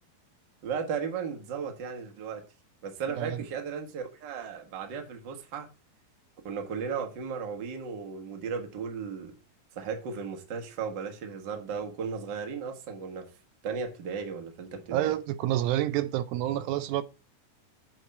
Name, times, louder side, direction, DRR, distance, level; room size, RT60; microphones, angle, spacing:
voice 1, 0.6-2.4 2.8-5.7 6.4-9.3 9.7-13.3 13.6-15.1, right 6 dB, 45° right, 1.5 m, -35 dB
voice 2, 14.9-17.0, right 13 dB, 85° right, 2.4 m, -28 dB
7.8 x 4.6 x 6.5 m
omnidirectional pair, 4.1 m